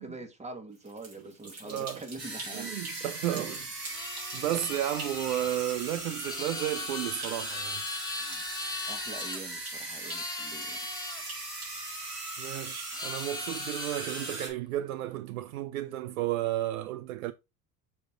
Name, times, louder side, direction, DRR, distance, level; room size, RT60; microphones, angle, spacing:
voice 1, 0.0-2.7 3.2-3.7 4.2-4.4 8.2-8.4 8.9-10.8, right 2 dB, 15° right, 1.7 m, -44 dB
sound 1, 0.7-13.2, right 2 dB, 30° right, 3.8 m, -47 dB
voice 2, 1.6-2.0 2.5-3.6 3.9-7.8 12.4-17.3, right 13 dB, 65° right, 0.6 m, -33 dB
sound 2, 2.2-14.5, right 2 dB, 85° right, 1.7 m, -39 dB
sound 3, 3.9-9.4 10.0-11.2 12.9-14.4, left 5 dB, 10° left, 0.4 m, -40 dB
6.4 x 4.3 x 3.7 m
figure-of-eight pair, 75°, 47 cm